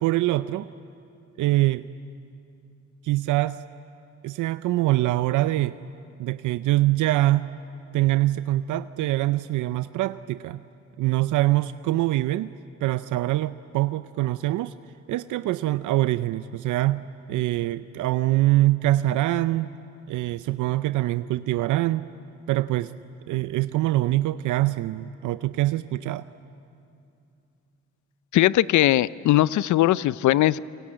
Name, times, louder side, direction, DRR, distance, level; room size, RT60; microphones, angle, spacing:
voice 1, 0.0-0.7 1.4-1.9 3.0-3.6 4.2-5.8 6.2-7.5 7.9-10.6 11.0-12.5 12.8-14.7 15.1-19.7 20.1-22.0 22.5-22.9 23.3-26.3, right 16 dB, 85° right, 13 dB, 0.6 m, -24 dB
voice 2, 28.3-30.6, left 15 dB, 75° left, 19 dB, 0.6 m, -20 dB
27.5 x 23.5 x 8.9 m, 2.6 s
cardioid pair, 90°, 30 cm